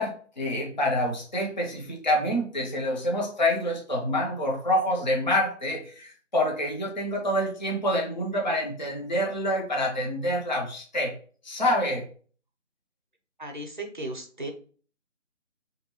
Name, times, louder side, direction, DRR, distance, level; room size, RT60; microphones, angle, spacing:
voice 1, 0.0-11.2 11.4-12.1, left 1 dB, 40° left, 0.4 m, -27 dB
voice 2, 13.4-14.5, right 1 dB, 40° right, 0.5 m, -35 dB
3.3 x 2.7 x 2.7 m
figure-of-eight pair, 170°, 38 cm